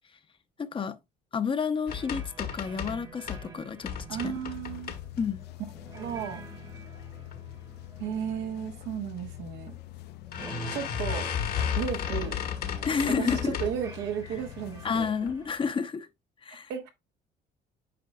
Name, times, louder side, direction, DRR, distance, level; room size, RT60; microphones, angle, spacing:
voice 1, 0.6-1.0 1.3-3.9 4.2-4.3 5.2-5.4 12.8-13.6 14.8-16.1 16.4-16.7, left 6 dB, 30° left, 0.7 m, -30 dB
sound 1, 1.9-3.5 3.8-5.4 5.9-6.5 7.0-7.4 7.6-7.7 8.0-8.1 9.2-9.3 9.7-9.8 10.3-13.9 14.3-14.7 15.2-15.3 15.7-15.8, left 8 dB, 60° left, 1.2 m, -34 dB
sound 2, 1.9-15.9, right 3 dB, 20° right, 1.1 m, -49 dB
sound 3, 4.1-15.1, left 18 dB, 75° left, 0.4 m, -45 dB
voice 2, 4.1-4.9 5.9-6.4 8.0-9.7 10.7-11.3 11.8-12.4 13.1-15.1 16.7-16.9, right 8 dB, 85° right, 1.4 m, -34 dB
8.4 x 5.0 x 2.3 m
cardioid pair, 110°, 17 cm